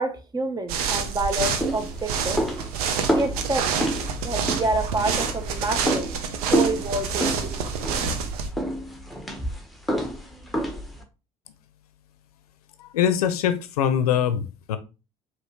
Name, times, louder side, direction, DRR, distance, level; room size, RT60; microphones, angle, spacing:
voice 1, 0.0-2.4 3.1-3.7 4.2-6.1 6.5-7.6, right 2 dB, 20° right, 0.9 m, -28 dB
sound 1, 0.7-8.5, right 6 dB, 80° right, 0.8 m, -28 dB
sound 2, 1.3-11.0, right 1 dB, ahead, 1.2 m, -29 dB
voice 2, 12.8-14.8, left 9 dB, 90° left, 0.5 m, -23 dB
5.0 x 3.0 x 3.1 m
hypercardioid pair, 70°, 19 cm